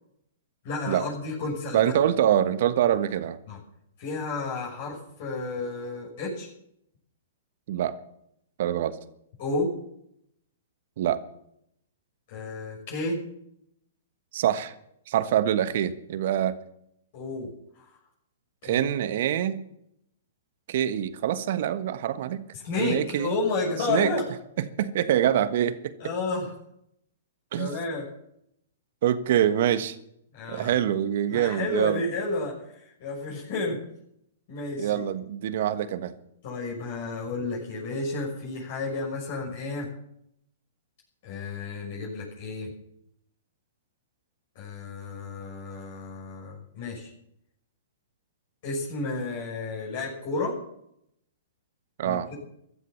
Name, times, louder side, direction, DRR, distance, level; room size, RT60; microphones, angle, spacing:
voice 1, 0.6-1.8 3.5-3.6 4.0-6.5 9.4-9.7 12.3-13.2 17.1-17.9 18.6-18.9 22.6-24.2 26.0-26.5 27.6-28.1 30.3-30.7 31.3-32.5 33.0-33.8 34.5-35.0 36.4-39.9 41.2-42.7 44.5-47.1 48.6-50.5 52.0-52.3, left 3 dB, 50° left, -3 dB, 6.4 m, -31 dB
voice 2, 1.7-3.4 7.7-7.9 8.6-9.0 11.0-11.2 14.3-14.7 15.1-16.6 18.6-19.6 20.7-22.4 22.8-23.3 23.9-24.1 24.6-25.9 27.5-27.8 29.0-30.0 30.5-32.0 34.8-36.1 52.0-52.3, right 10 dB, 55° right, 12 dB, 1.4 m, -25 dB
15.0 x 13.0 x 7.2 m, 0.77 s
figure-of-eight pair, 115°, 0 cm